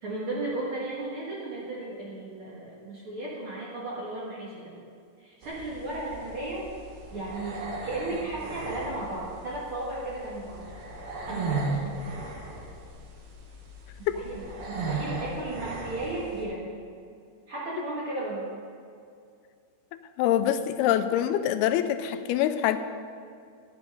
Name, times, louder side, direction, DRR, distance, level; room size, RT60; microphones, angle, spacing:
voice 1, 0.0-4.7 5.2-6.6 7.1-10.7 11.3-12.1 14.0-16.7 17.5-18.5, right 2 dB, 50° right, -5 dB, 1.7 m, -35 dB
sound 1, 5.4-16.4, right 3 dB, 70° right, 3.3 m, -37 dB
voice 2, 19.9-22.8, left 11 dB, 90° left, 10 dB, 2.6 m, -25 dB
12.0 x 9.4 x 5.3 m, 2.4 s
omnidirectional pair, 4.4 m